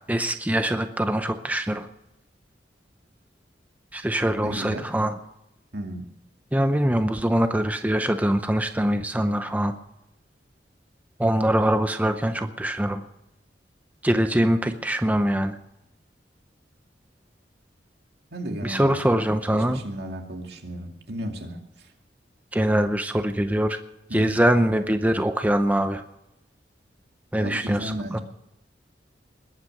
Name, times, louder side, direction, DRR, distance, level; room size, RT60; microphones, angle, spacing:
voice 1, 0.1-1.9 3.9-5.1 6.5-9.8 11.2-13.0 14.0-15.6 18.6-19.8 22.5-23.8 24.1-26.0 27.3-28.2, right 1 dB, 10° right, 8 dB, 0.7 m, -23 dB
voice 2, 4.4-4.9 5.7-6.1 18.3-19.0 19.5-21.9 24.1-24.4 27.4-28.2, equal, 65° right, 3 dB, 2.4 m, -34 dB
21.0 x 9.4 x 6.5 m, 0.88 s
head